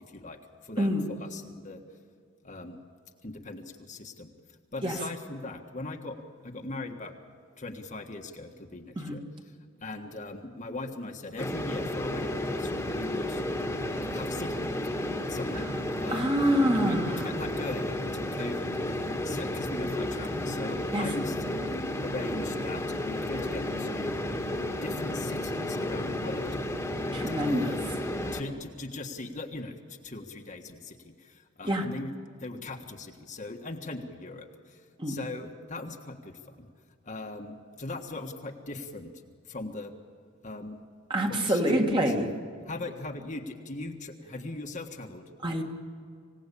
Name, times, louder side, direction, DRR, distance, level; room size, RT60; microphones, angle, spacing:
voice 1, 0.1-1.8 2.4-2.8 3.2-4.3 4.7-6.2 6.4-7.1 7.6-9.2 9.8-13.4 14.1-14.8 15.3-15.6 16.0-21.7 22.0-24.2 24.8-26.6 27.4-27.9 28.3-32.1 32.4-36.7 37.0-39.1 39.5-39.9 40.4-40.8 41.3-42.1 42.7-45.2, left 2 dB, 40° left, 3 dB, 1.6 m, -40 dB
sound 1, 11.4-28.4, left 1 dB, 15° left, 1.8 m, -32 dB
voice 2, 16.1-17.2 20.9-21.1 27.1-27.8 31.6-31.8 35.0-35.2 41.1-42.3 45.4-45.6, equal, 25° right, 2 dB, 2.1 m, -26 dB
26.5 x 17.0 x 8.5 m, 2.1 s
head